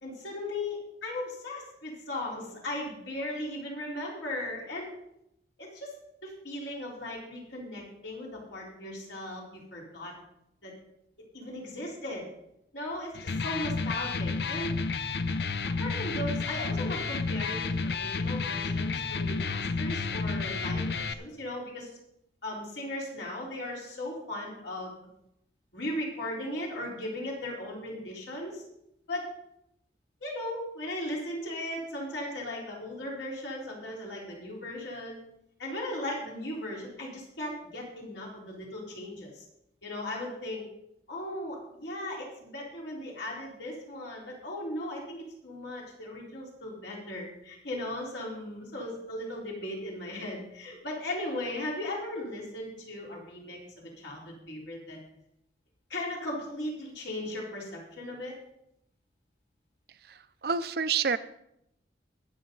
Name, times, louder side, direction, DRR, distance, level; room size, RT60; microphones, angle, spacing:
voice 1, 0.0-4.9 5.6-5.9 6.2-10.1 10.6-10.7 11.3-12.3 12.7-14.8 15.3-15.5 15.8-21.9 22.4-25.0 25.7-28.6 29.1-29.3 30.2-35.2 35.6-39.5 39.8-40.6 41.1-55.0 55.9-58.3, left 1 dB, 75° left, -3 dB, 4.1 m, -37 dB
Electric guitar, 13.1-21.1, left 4 dB, 60° left, 0.6 m, -31 dB
voice 2, 60.1-61.2, right 6 dB, 55° right, 12 dB, 0.6 m, -29 dB
22.0 x 7.4 x 3.9 m, 0.78 s
head